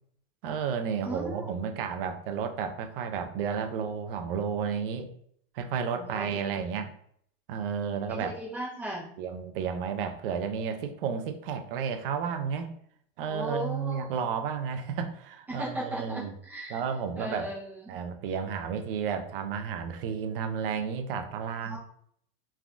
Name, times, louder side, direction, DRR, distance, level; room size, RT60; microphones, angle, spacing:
voice 1, 0.4-5.1 5.5-6.9 7.5-8.3 9.2-12.8 13.2-16.3 16.7-17.5 17.9-21.8, right 6 dB, 65° right, 6 dB, 0.5 m, -32 dB
voice 2, 1.0-1.5 6.0-6.5 8.1-9.1 13.3-14.1 15.5-16.8 17.2-17.9 21.6-21.8, right 1 dB, 5° right, -5 dB, 0.5 m, -37 dB
3.4 x 2.2 x 2.5 m, 0.66 s
supercardioid pair, 170°, 29 cm